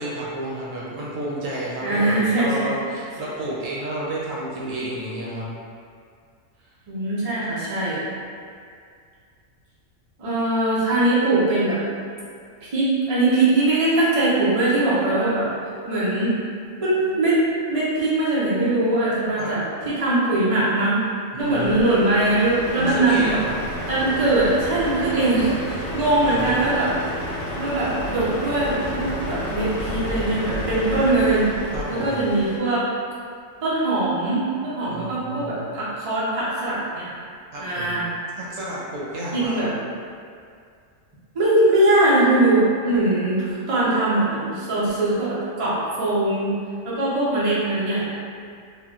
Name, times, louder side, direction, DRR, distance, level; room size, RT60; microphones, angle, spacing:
voice 1, 0.0-5.5 19.4-19.6 21.3-21.9 22.7-23.6 26.1-26.6 31.7-32.2 34.9-35.7 37.5-37.9 38.4-39.7, right 1 dB, 75° right, -6 dB, 1.0 m, -31 dB
voice 2, 1.8-2.7 6.9-8.0 10.2-11.8 12.6-15.5 15.9-16.3 16.8-17.4 17.7-21.0 21.4-23.4 23.9-26.9 27.6-31.5 31.9-32.8 33.6-37.2 37.6-38.1 39.3-39.7 41.3-46.5 46.8-48.1, right 2 dB, 35° right, -9 dB, 0.6 m, -21 dB
Truck, 21.4-32.6, equal, 65° left, 0.8 m, -31 dB
3.6 x 2.3 x 2.4 m, 2.2 s
omnidirectional pair, 1.4 m